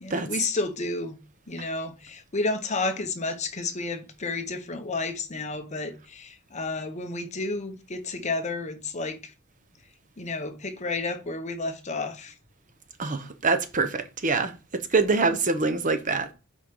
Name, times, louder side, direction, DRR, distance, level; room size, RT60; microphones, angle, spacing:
voice 1, 0.0-1.2 1.5-9.3 10.2-12.3, left 3 dB, 35° left, 0.8 m, -31 dB
voice 2, 13.0-14.5 14.9-16.3, right 4 dB, 40° right, 0.8 m, -24 dB
6.1 x 4.5 x 5.2 m
head